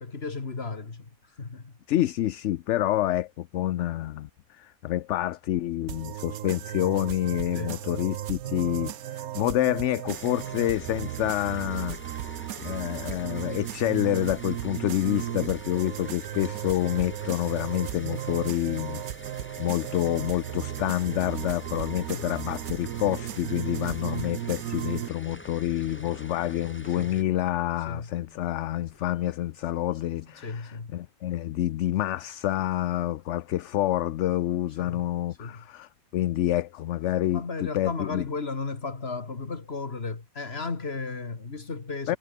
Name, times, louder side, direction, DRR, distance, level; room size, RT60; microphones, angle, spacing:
voice 1, 0.0-1.7 7.5-7.8 22.1-22.5 23.9-24.4 26.0-26.2 27.0-27.2 27.9-28.1 30.4-30.9 34.8-35.1 35.4-35.7 37.3-42.2, left 4 dB, 45° left, 2.4 m, -35 dB
voice 2, 1.9-12.0 12.6-19.0 19.6-38.3 42.1-42.2, left 13 dB, 65° left, 0.8 m, -28 dB
sound 1, 5.9-25.1, right 12 dB, 90° right, 1.2 m, -35 dB
sound 2, 10.1-27.2, equal, 10° left, 8.0 m, -46 dB
sound 3, 22.9-30.6, right 1 dB, 10° right, 4.0 m, -58 dB
omnidirectional pair, 1.5 m